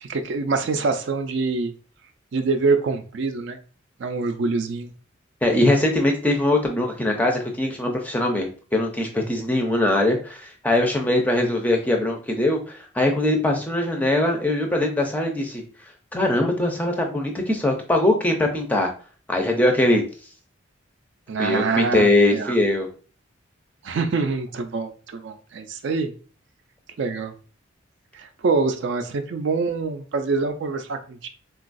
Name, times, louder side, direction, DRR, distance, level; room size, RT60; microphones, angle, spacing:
voice 1, 0.0-1.7 2.3-3.6 4.0-4.9 21.3-22.5 23.8-26.1 27.0-27.3 28.1-31.3, right 4 dB, 60° right, 7 dB, 0.4 m, -25 dB
voice 2, 5.4-15.6 16.1-18.9 19.3-20.0 21.4-22.9, left 1 dB, 10° left, 2 dB, 0.4 m, -21 dB
3.8 x 2.3 x 2.5 m, 0.39 s
head